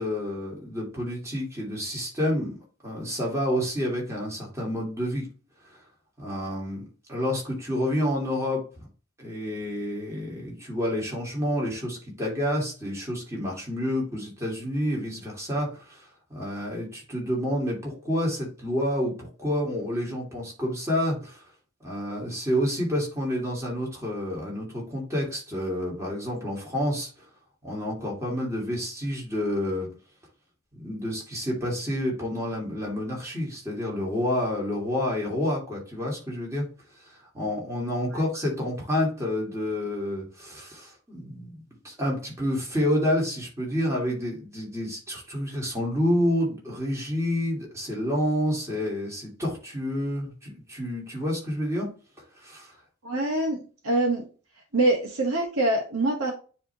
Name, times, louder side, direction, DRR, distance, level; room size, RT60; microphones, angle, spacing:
voice 1, 0.0-5.3 6.2-8.9 9.2-21.4 21.8-27.1 27.6-29.9 30.7-36.7 37.0-51.9 52.3-52.8, left 1 dB, 15° right, -3 dB, 2.7 m, -29 dB
voice 2, 53.0-53.6 53.8-54.2 54.7-56.3, right 2 dB, 65° right, -3 dB, 1.6 m, -24 dB
9.3 x 3.5 x 3.0 m, 0.35 s
head